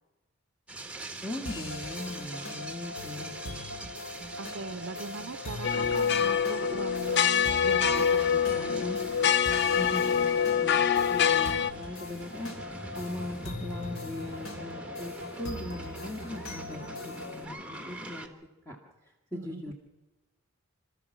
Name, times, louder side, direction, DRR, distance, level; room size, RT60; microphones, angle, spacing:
sound 1, 0.7-18.3, right 2 dB, 5° right, 1.5 m, -44 dB
voice 1, 1.2-3.6 8.7-9.0 9.7-10.3 10.6-10.8 11.1-18.3 18.7-18.8 19.3-19.7, left 2 dB, 10° left, 0 dB, 1.9 m, -40 dB
sound 2, 1.5-17.5, left 2 dB, 75° left, 3.3 m, -41 dB
voice 2, 4.4-8.7 19.3-19.7, right 4 dB, 60° right, 13 dB, 0.6 m, -40 dB
sound 3, 5.6-11.7, left 7 dB, 55° left, 0.6 m, -25 dB
27.5 x 13.5 x 7.2 m, 1.1 s
head